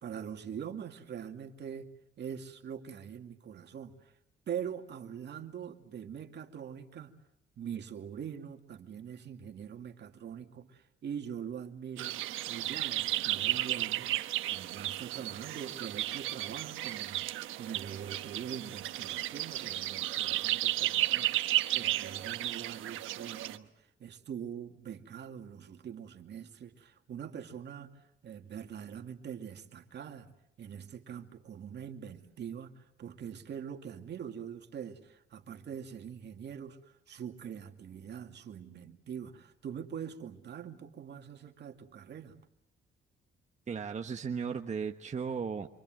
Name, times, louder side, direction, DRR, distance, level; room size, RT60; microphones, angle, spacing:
voice 1, 0.0-1.9 2.2-3.9 4.5-7.1 7.6-12.2 12.5-14.1 14.5-21.3 21.7-23.7 24.0-27.9 28.2-36.8 37.1-42.4, right 8 dB, 60° right, 5 dB, 2.4 m, -43 dB
sound 1, 12.0-23.6, right 14 dB, 85° right, 1.2 m, -33 dB
voice 2, 43.7-45.7, right 6 dB, 35° right, 4 dB, 1.3 m, -35 dB
27.0 x 24.5 x 7.8 m, 0.77 s
cardioid pair, 90°, 20 cm